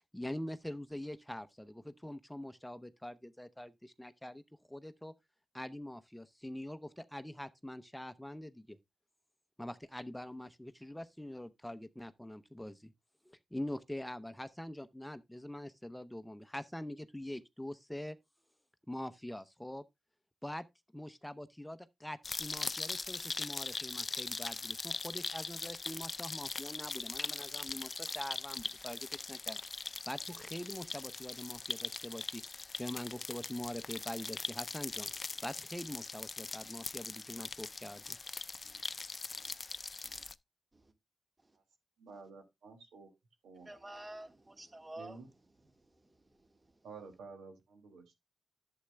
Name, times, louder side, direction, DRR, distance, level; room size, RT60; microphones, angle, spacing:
voice 1, 0.1-4.4 4.7-5.1 5.5-8.8 9.6-12.9 13.2-18.2 18.9-19.8 20.4-20.6 20.9-29.6 30.1-32.4 32.8-35.1 35.4-38.0, left 1 dB, 5° left, 0.7 m, -44 dB
sound 1, 22.2-40.3, left 3 dB, 45° left, 0.5 m, -41 dB
voice 2, 42.0-43.1 43.4-43.7 45.0-45.2 46.8-48.1, right 4 dB, 90° right, 2.0 m, -51 dB
voice 3, 43.7-45.2 45.8-46.6, right 1 dB, 30° right, 1.6 m, -50 dB
11.0 x 7.7 x 2.2 m
supercardioid pair, 45°, 0 cm